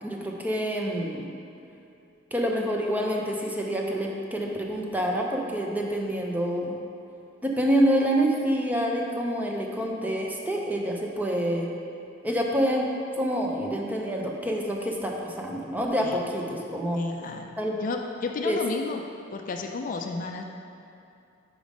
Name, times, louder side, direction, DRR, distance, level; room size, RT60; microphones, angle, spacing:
voice 1, 0.0-1.3 2.3-6.7 7.4-11.7 12.2-12.9 13.2-17.0 17.6-17.8 18.4-18.6, equal, 10° right, -1 dB, 0.6 m, -27 dB
voice 2, 16.9-17.5 17.8-19.0 19.3-20.4, left 3 dB, 45° left, 3 dB, 0.4 m, -32 dB
5.1 x 5.0 x 5.1 m, 2.7 s
head